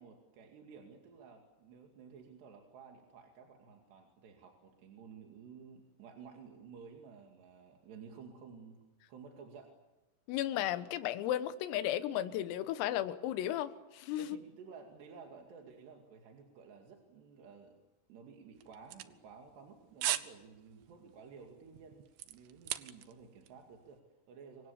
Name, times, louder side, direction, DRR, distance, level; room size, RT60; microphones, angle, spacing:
voice 1, 0.0-8.8 9.1-9.7 14.2-17.8 18.1-24.7, right 5 dB, 60° right, 2 dB, 4.2 m, -54 dB
voice 2, 10.3-14.3, left 12 dB, 90° left, 11 dB, 4.0 m, -34 dB
sound 1, 18.6-19.7 20.0-20.3 20.7-20.9 21.4-23.2 23.5-23.6, right 14 dB, 75° right, 2.7 m, -37 dB
28.5 x 24.5 x 7.2 m, 1.1 s
omnidirectional pair, 5.9 m